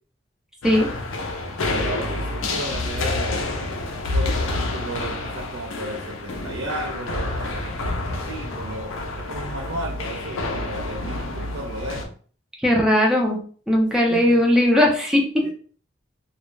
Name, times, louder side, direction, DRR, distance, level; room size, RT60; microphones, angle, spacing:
sound 1, 0.6-12.0, left 2 dB, 80° left, 0.5 m, -28 dB
voice 1, 1.6-3.5 4.1-12.1 14.1-14.4 15.4-15.5, right 1 dB, 65° right, -1 dB, 0.4 m, -34 dB
voice 2, 12.6-13.4 13.7-15.5, left 1 dB, 5° right, -1 dB, 0.5 m, -18 dB
2.3 x 2.0 x 3.1 m, 0.43 s
head